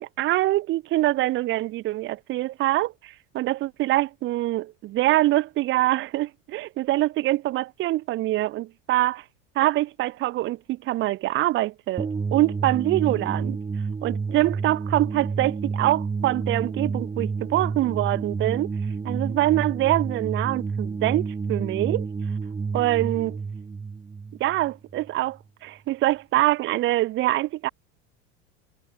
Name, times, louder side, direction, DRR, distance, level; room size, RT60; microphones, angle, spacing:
voice 1, 0.0-9.2 9.6-13.6 14.0-18.7 19.0-22.1 22.7-23.4 24.4-27.7, right 16 dB, 40° right, 0.6 m, -24 dB
sound 1, 12.0-25.1, right 5 dB, 15° right, 1.1 m, -30 dB
supercardioid pair, 100°, 30 cm